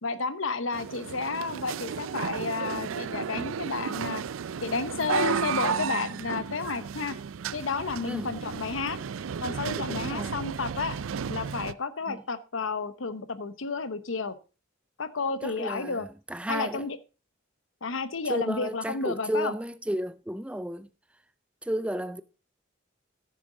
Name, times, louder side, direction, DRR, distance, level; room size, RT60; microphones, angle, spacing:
voice 1, 0.0-4.2 4.6-7.2 7.5-9.0 9.4-11.0 11.3-14.4 15.0-16.1 16.5-17.0 17.8-19.5, left 4 dB, 80° left, 0.9 m, -31 dB
sound 1, 0.7-11.7, right 7 dB, 85° right, 0.4 m, -33 dB
voice 2, 9.8-10.3 12.1-12.2 15.4-16.0 16.3-16.8 18.3-20.9 21.7-22.2, right 1 dB, 5° right, 0.4 m, -32 dB
14.5 x 6.8 x 3.8 m
head